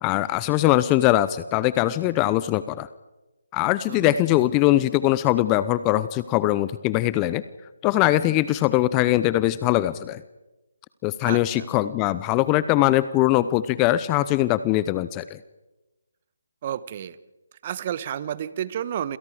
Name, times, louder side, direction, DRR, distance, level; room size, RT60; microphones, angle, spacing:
voice 1, 0.0-2.9 3.5-7.4 7.8-10.2 11.0-15.4, left 15 dB, 20° left, 16 dB, 0.7 m, -21 dB
voice 2, 11.2-11.7 16.6-17.2 17.6-19.2, right 10 dB, 35° right, 16 dB, 1.2 m, -31 dB
28.0 x 28.0 x 5.0 m, 1.1 s
figure-of-eight pair, 150°, 0 cm